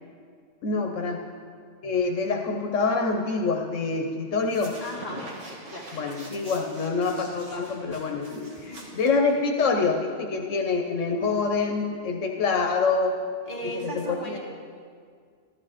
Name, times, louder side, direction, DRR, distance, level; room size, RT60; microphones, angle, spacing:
voice 1, 0.6-1.2 1.8-4.8 5.9-13.1 13.8-14.4, left 4 dB, 85° left, 2 dB, 1.3 m, -26 dB
sound 1, 4.4-9.7, right 1 dB, 75° right, 2.1 m, -44 dB
voice 2, 4.8-5.2 5.6-5.9 8.5-8.9 13.5-14.4, equal, 30° left, -5 dB, 2.4 m, -36 dB
14.0 x 11.0 x 5.0 m, 2.1 s
omnidirectional pair, 1.3 m